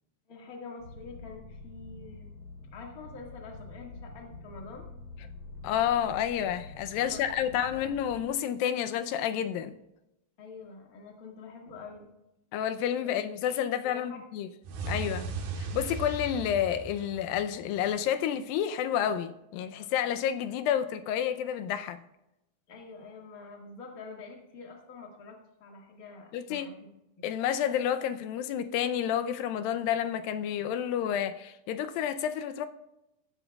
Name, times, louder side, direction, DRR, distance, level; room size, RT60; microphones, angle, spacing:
voice 1, 0.3-2.3 2.7-4.8 7.0-7.9 10.4-12.1 13.0-13.2 13.8-14.2 22.7-26.9, left 4 dB, 35° left, 1.7 m, -46 dB
sound 1, 0.8-8.3, left 3 dB, 50° left, 3.0 m, -47 dB
voice 2, 5.6-9.8 12.5-14.5 14.9-15.3 15.6-22.0 26.3-26.7 27.2-32.7, left 9 dB, 85° left, 2.4 m, -30 dB
sound 2, 14.6-17.8, right 3 dB, 90° right, 3.1 m, -37 dB
15.0 x 11.0 x 2.4 m
omnidirectional pair, 4.0 m